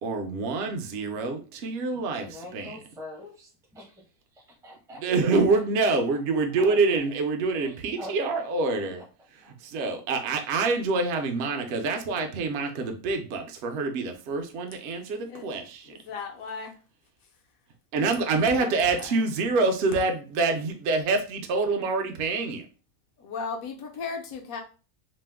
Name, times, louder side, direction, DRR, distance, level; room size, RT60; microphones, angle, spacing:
voice 1, 0.0-2.3 2.5-2.7 5.0-9.0 9.6-15.9 17.9-22.7, right 3 dB, 65° right, 4 dB, 0.6 m, -26 dB
voice 2, 2.1-5.2 5.5-5.6 6.1-6.2 6.6-7.2 7.5-8.5 9.0-9.1 9.4-9.5, left 1 dB, 5° right, -1 dB, 0.4 m, -45 dB
voice 3, 15.8-16.8 17.2-17.4 18.4-19.3 23.2-24.6, left 5 dB, 75° left, 2 dB, 1.1 m, -37 dB
2.9 x 2.1 x 3.3 m, 0.35 s
omnidirectional pair, 1.5 m